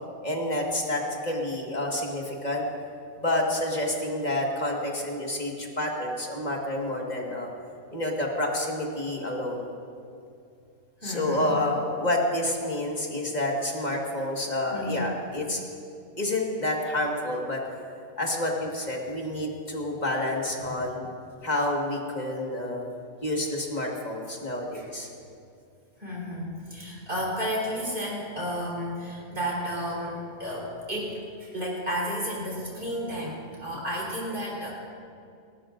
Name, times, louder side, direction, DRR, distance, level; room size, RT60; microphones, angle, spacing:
voice 1, 0.2-2.7 3.2-7.5 7.9-9.7 11.0-15.6 16.2-17.6 18.2-21.1 21.4-22.8 23.2-25.1, left 1 dB, 30° left, -1 dB, 1.8 m, -29 dB
voice 2, 11.0-11.7 14.7-15.1 20.6-20.7 24.7-24.9 26.0-34.7, equal, 35° right, -4 dB, 4.2 m, -32 dB
29.5 x 12.5 x 2.6 m, 2.5 s
omnidirectional pair, 1.5 m